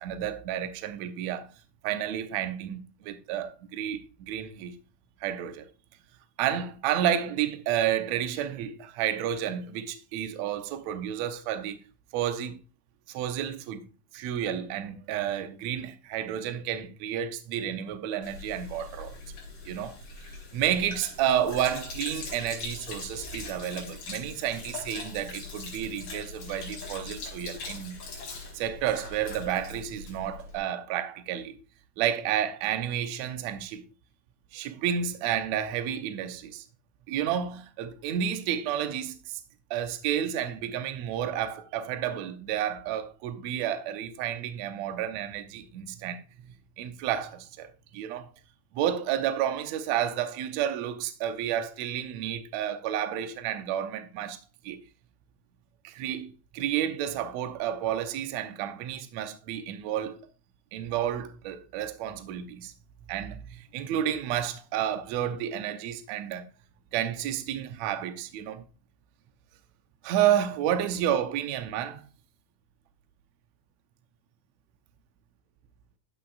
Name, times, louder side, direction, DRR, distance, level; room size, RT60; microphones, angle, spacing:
voice 1, 0.0-1.5 1.8-4.8 5.2-5.7 6.4-11.8 12.1-12.6 13.1-13.8 14.1-19.2 19.6-20.0 20.5-28.0 28.5-31.6 32.0-33.8 34.5-36.6 37.1-39.4 39.7-46.2 46.8-48.3 48.7-54.4 54.6-54.8 55.8-60.2 60.7-62.7 63.1-66.5 66.9-68.6 70.0-72.0, right 10 dB, 70° right, 1.8 m, -31 dB
Sink (filling or washing), 18.2-30.6, left 3 dB, 80° left, 4.3 m, -41 dB
13.0 x 5.8 x 2.4 m
omnidirectional pair, 3.7 m